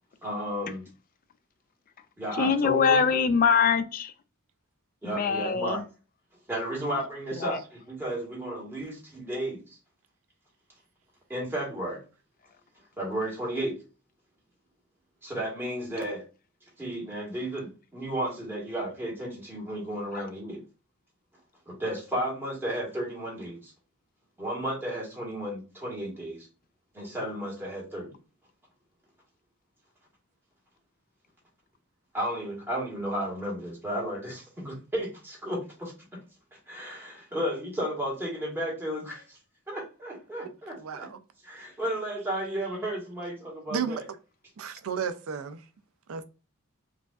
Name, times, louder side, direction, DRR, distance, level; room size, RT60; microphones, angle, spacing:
voice 1, 0.2-0.8 2.2-3.0 5.0-5.8 6.5-9.8 11.3-12.0 13.0-13.8 15.2-16.2 16.8-20.6 21.7-23.7 24.4-26.5 26.9-28.1 32.1-36.2 36.5-39.4 39.7-41.1 41.4-44.0, right 1 dB, 10° right, 1.3 m, -33 dB
voice 2, 2.3-4.1 5.0-5.8 7.4-7.6, left 6 dB, 40° left, 0.4 m, -23 dB
voice 3, 40.8-41.2 43.7-44.0 44.6-45.6 46.1-46.2, right 6 dB, 65° right, 0.4 m, -33 dB
4.8 x 2.4 x 2.4 m
head